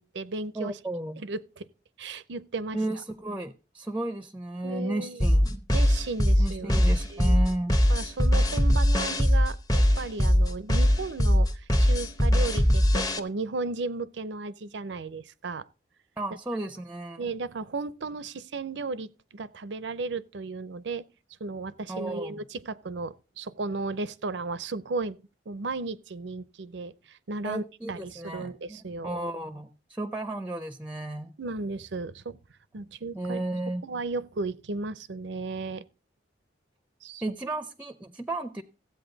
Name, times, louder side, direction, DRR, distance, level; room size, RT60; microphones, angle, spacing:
voice 1, 0.0-0.8 1.2-1.7 2.0-2.8 4.6-5.2 5.7-6.7 7.1-7.4 7.9-15.7 17.2-21.0 21.4-25.2 25.5-29.1 31.4-32.4 32.7-33.4 33.8-35.8 37.0-37.2, right 3 dB, 75° right, 0.6 m, -35 dB
voice 2, 0.6-1.2 2.7-5.6 6.4-7.8 16.2-17.3 21.9-22.4 27.4-31.3 33.1-33.8 37.2-38.6, right 2 dB, 5° right, 0.5 m, -33 dB
sound 1, 5.2-13.2, equal, 20° left, 0.8 m, -21 dB
15.5 x 8.4 x 3.9 m
head